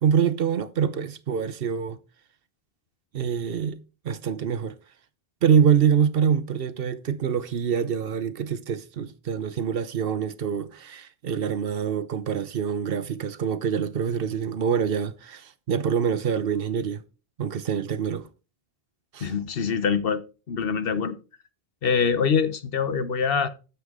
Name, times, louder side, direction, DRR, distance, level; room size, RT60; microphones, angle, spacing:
voice 1, 0.0-2.0 3.1-3.8 4.0-4.7 5.4-17.0 17.4-18.3 19.1-19.3, right 7 dB, 65° right, 0.9 m, -25 dB
voice 2, 19.2-20.2 20.5-21.1 21.8-23.5, left 6 dB, 65° left, 1.1 m, -24 dB
9.5 x 7.2 x 3.6 m
omnidirectional pair, 1.0 m